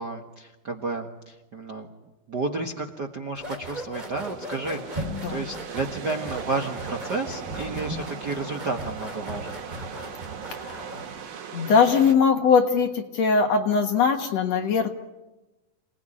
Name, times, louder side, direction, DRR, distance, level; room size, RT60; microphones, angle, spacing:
voice 1, 0.0-1.9 2.3-9.6, right 3 dB, 45° right, 2 dB, 1.3 m, -32 dB
sound 1, 3.4-11.2, right 1 dB, 10° right, 3.8 m, -37 dB
sound 2, 4.0-12.2, right 7 dB, 85° right, 3.8 m, -39 dB
voice 2, 11.5-14.9, left 5 dB, 55° left, 5 dB, 2.3 m, -21 dB
27.0 x 19.5 x 10.0 m, 1.1 s
omnidirectional pair, 4.0 m